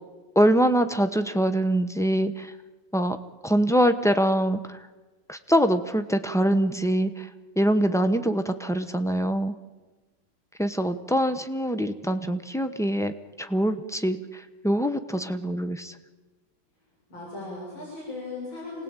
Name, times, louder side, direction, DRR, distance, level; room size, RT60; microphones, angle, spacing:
voice 1, 0.3-2.5 2.9-3.2 3.4-4.9 5.3-7.3 7.6-9.5 10.6-13.1 13.4-15.9, equal, 5° left, 9 dB, 0.4 m, -24 dB
voice 2, 15.2-15.6 17.1-18.8, left 2 dB, 90° left, -4 dB, 7.6 m, -37 dB
27.5 x 19.0 x 9.0 m, 1.3 s
omnidirectional pair, 2.1 m